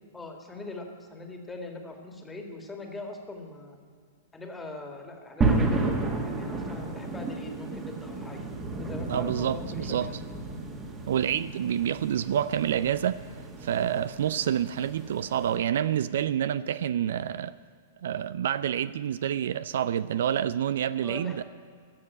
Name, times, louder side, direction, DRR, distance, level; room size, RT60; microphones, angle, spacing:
voice 1, 0.1-3.8 4.3-8.4 8.7-10.2 21.0-21.4, left 2 dB, 10° left, 2.0 m, -41 dB
sound 1, 5.4-15.6, right 3 dB, 20° right, 1.8 m, -32 dB
voice 2, 9.1-10.1 11.1-13.2 13.6-17.5 18.0-21.4, right 10 dB, 60° right, 0.3 m, -28 dB
14.5 x 7.3 x 9.5 m
figure-of-eight pair, 105°, 0 cm